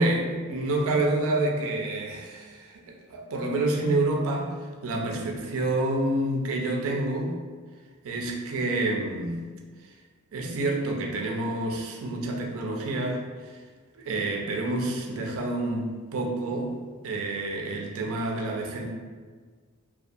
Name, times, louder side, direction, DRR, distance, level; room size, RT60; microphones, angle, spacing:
voice 1, 0.0-4.5 4.8-7.3 8.0-9.4 9.8-9.9 10.3-13.6 13.9-16.7 17.0-18.8, right 2 dB, 65° right, 0 dB, 0.4 m, -28 dB
2.6 x 2.3 x 2.3 m, 1.5 s
head